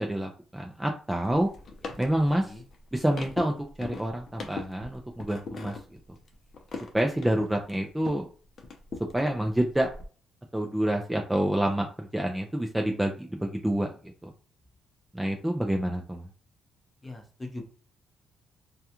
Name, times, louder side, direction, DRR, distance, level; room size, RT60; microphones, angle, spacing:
voice 1, 0.0-1.5 2.0-2.5 2.9-5.8 6.9-8.3 9.1-9.9 10.5-14.3 15.1-16.3, right 1 dB, 10° right, 2 dB, 0.4 m, -28 dB
sound 1, 1.2-8.3 8.6-10.1, left 4 dB, 50° left, 0.5 m, -41 dB
voice 2, 17.0-17.6, left 2 dB, 20° left, 3 dB, 0.8 m, -41 dB
2.3 x 2.2 x 2.9 m, 0.40 s
cardioid pair, 90°, 0 cm